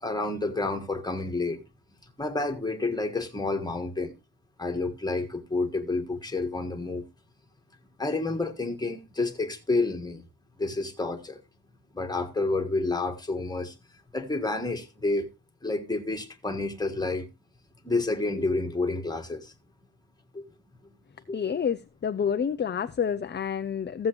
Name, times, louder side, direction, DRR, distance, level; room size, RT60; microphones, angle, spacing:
voice 1, 0.0-1.6 2.2-4.1 4.6-7.0 8.0-10.2 10.6-11.4 11.9-13.7 14.1-15.3 15.6-17.3 17.8-19.5 20.3-20.4 21.3-21.6, left 3 dB, 10° left, 1.5 m, -29 dB
voice 2, 21.3-24.1, left 7 dB, 25° left, 0.4 m, -28 dB
15.0 x 7.4 x 2.9 m
cardioid pair, 115°, 45 cm